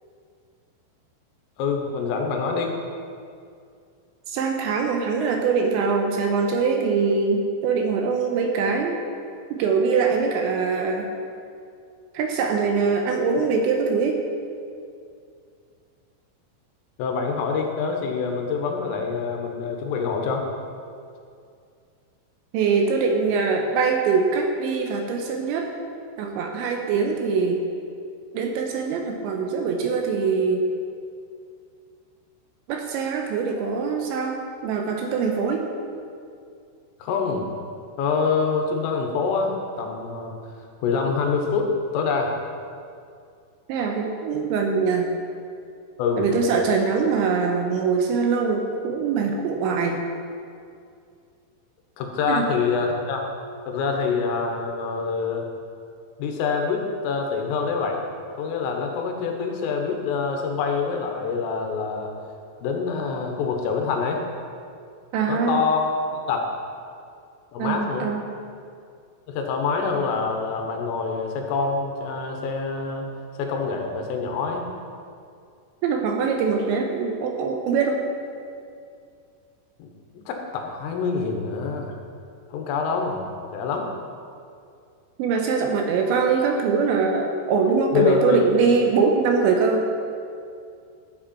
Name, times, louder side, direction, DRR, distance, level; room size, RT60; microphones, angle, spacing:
voice 1, 1.6-2.7 17.0-20.5 37.0-37.4 38.0-40.3 40.8-42.3 46.0-46.3 52.0-53.3 53.7-55.5 56.2-58.0 58.4-62.1 62.6-64.2 65.3-66.4 67.5-68.1 69.3-73.1 73.4-74.7 79.8-79.9 80.2-82.0 82.5-83.9 87.9-88.5, left 5 dB, 90° left, 2 dB, 3.8 m, -25 dB
voice 2, 4.3-9.0 9.5-11.1 12.1-14.2 22.5-25.7 26.2-27.6 28.3-30.6 32.7-35.7 43.7-45.1 46.2-50.0 52.3-52.5 65.1-65.6 67.6-68.2 75.8-78.1 85.2-89.9, right 5 dB, 80° right, 3 dB, 2.8 m, -23 dB
14.0 x 7.9 x 4.3 m, 2.4 s
omnidirectional pair, 5.7 m